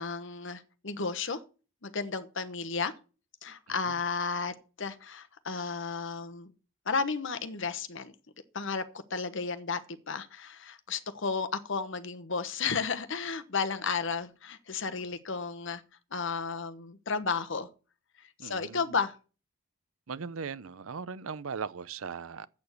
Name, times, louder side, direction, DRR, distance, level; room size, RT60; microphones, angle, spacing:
voice 1, 0.0-1.4 1.8-2.9 3.4-6.5 6.8-8.1 8.5-8.8 9.1-9.8 10.1-15.8 16.1-17.7 18.2-19.2, left 5 dB, 60° left, 1.0 m, -33 dB
voice 2, 18.4-18.8 20.1-22.5, right 5 dB, 85° right, 0.7 m, -39 dB
8.3 x 6.9 x 8.2 m
head